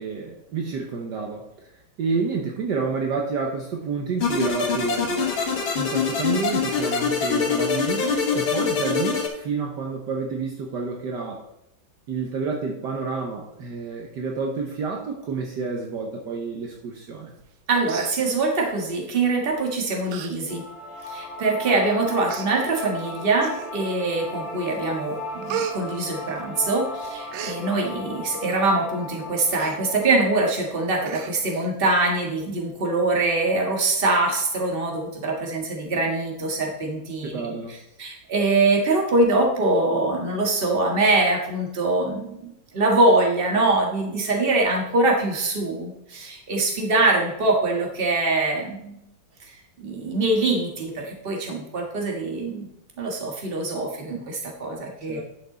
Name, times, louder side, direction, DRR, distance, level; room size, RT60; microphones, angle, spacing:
voice 1, 0.0-1.7 2.0-5.3 5.7-11.4 12.1-17.3 37.3-37.7 55.1-55.2, right 4 dB, 65° right, 0 dB, 1.5 m, -29 dB
sound 1, 4.2-9.3, left 5 dB, 90° left, 2.4 m, -24 dB
Human voice, 17.4-17.6 17.8-18.8 19.5-19.7 20.1-20.3 20.7-20.8 21.6-21.7 22.3-22.5 23.4-23.9 24.4-24.8 25.0-26.7 27.0-27.6 29.5-29.8 30.2-30.3 30.6-30.7 31.1-31.7 32.1-32.2, right 7 dB, 80° right, 1.5 m, -35 dB
voice 2, 17.7-20.6 21.1-37.4 38.0-49.0 49.5-52.7 53.0-55.2, right 2 dB, 30° right, 0 dB, 1.6 m, -23 dB
sound 2, 20.5-31.6, left 1 dB, 30° left, 4.1 m, -37 dB
11.0 x 5.9 x 3.9 m, 0.82 s
omnidirectional pair, 2.2 m